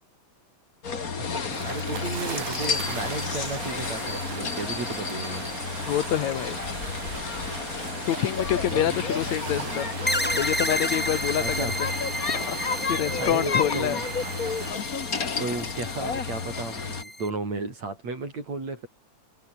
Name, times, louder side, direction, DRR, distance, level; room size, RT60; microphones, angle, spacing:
sound 1, 0.8-17.0, left 5 dB, 35° left, 2.1 m, -31 dB
voice 1, 1.2-5.4 8.7-9.0 11.4-11.8 13.1-14.0 15.4-18.9, right 3 dB, 65° right, 8.7 m, -34 dB
sound 2, 1.5-14.7, right 8 dB, 85° right, 3.8 m, -38 dB
voice 2, 5.9-6.6 8.1-9.9 10.4-11.9 12.3-12.6 12.9-14.0, left 11 dB, 75° left, 2.4 m, -27 dB
sound 3, 10.1-17.3, equal, 5° left, 2.8 m, -32 dB
omnidirectional pair, 3.4 m